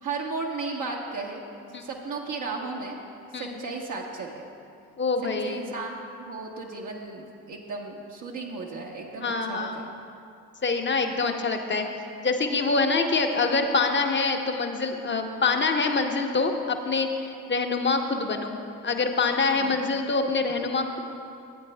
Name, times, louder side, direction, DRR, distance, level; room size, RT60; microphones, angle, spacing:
voice 1, 0.0-1.4 1.8-3.0 3.4-4.5 5.4-9.9 19.5-19.8, right 3 dB, 50° right, -1 dB, 1.0 m, -35 dB
voice 2, 5.0-5.6 9.2-9.8 10.6-11.9 12.2-21.0, left 4 dB, 30° left, 4 dB, 0.9 m, -25 dB
15.0 x 9.0 x 2.2 m, 2.6 s
hypercardioid pair, 40°, 40 cm